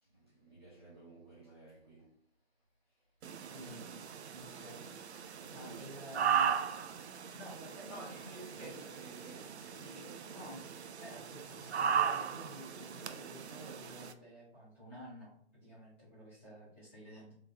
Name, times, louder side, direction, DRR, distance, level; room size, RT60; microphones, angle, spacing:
voice 1, 0.0-2.2 5.4-5.8 7.9-10.3, right 1 dB, 20° right, 0.7 m, -52 dB
sound 1, 3.2-14.1, right 8 dB, 70° right, 0.5 m, -37 dB
voice 2, 3.5-3.9 4.3-4.8 5.2-6.5 7.3-8.7 10.3-10.6 11.0-17.3, equal, 10° left, 1.4 m, -51 dB
3.6 x 3.0 x 2.8 m
hypercardioid pair, 170°, 34 cm